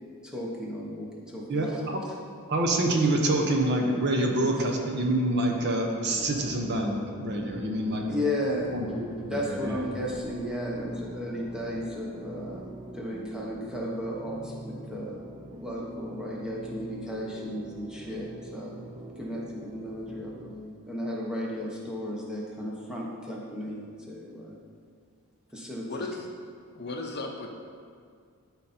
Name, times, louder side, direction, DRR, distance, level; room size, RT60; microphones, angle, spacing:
voice 1, 0.2-2.2 8.1-8.7 9.3-12.6 12.9-15.2 15.6-18.8 19.2-24.6 25.5-25.9, left 1 dB, 5° right, -4 dB, 1.1 m, -34 dB
voice 2, 1.5-2.0 2.5-8.0 8.7-9.8, right 1 dB, 50° right, 1 dB, 0.9 m, -27 dB
sound 1, 6.0-20.5, right 1 dB, 25° right, 0.5 m, -44 dB
voice 3, 25.9-26.3 26.7-27.6, left 2 dB, 45° left, 2 dB, 0.7 m, -35 dB
12.0 x 4.1 x 4.4 m, 2.2 s
head